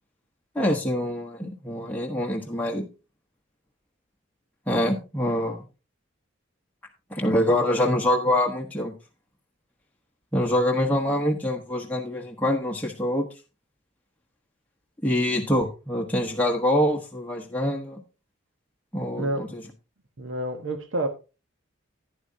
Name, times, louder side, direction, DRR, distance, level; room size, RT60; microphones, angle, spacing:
voice 1, 0.5-2.8 4.7-5.6 7.1-8.9 10.3-13.3 15.0-18.0 18.9-19.6, left 1 dB, 10° left, 1.1 m, -25 dB
voice 2, 19.2-19.5 20.2-21.1, right 1 dB, 70° right, 1.2 m, -28 dB
11.0 x 9.7 x 2.7 m
head